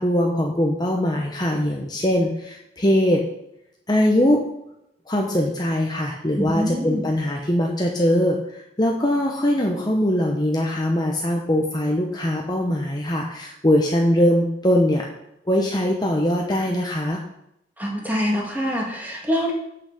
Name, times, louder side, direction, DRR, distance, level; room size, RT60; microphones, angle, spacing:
voice 1, 0.0-3.2 3.9-4.4 5.1-15.1 15.5-17.2, left 1 dB, 25° left, 0 dB, 1.0 m, -21 dB
voice 2, 6.3-7.0 17.8-19.5, equal, 10° right, -1 dB, 2.3 m, -25 dB
8.0 x 6.4 x 6.5 m, 0.79 s
head